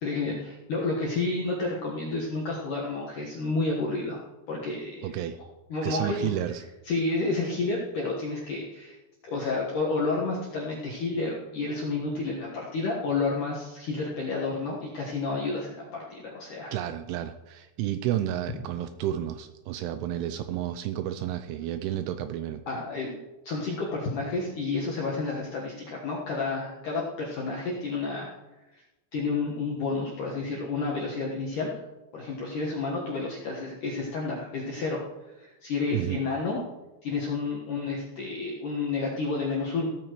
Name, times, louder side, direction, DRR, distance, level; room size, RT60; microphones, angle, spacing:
voice 1, 0.0-4.2 4.5-5.2 5.7-6.3 6.9-9.0 9.2-16.8 22.7-28.3 28.7-28.8 29.1-31.8 32.1-36.6 37.0-39.9, left 3 dB, 70° left, -3 dB, 1.9 m, -30 dB
voice 2, 5.0-5.4 5.8-6.6 16.7-22.6 35.9-36.2, right 12 dB, 85° right, 9 dB, 2.8 m, -31 dB
16.5 x 13.0 x 3.1 m, 1.1 s
omnidirectional pair, 5.9 m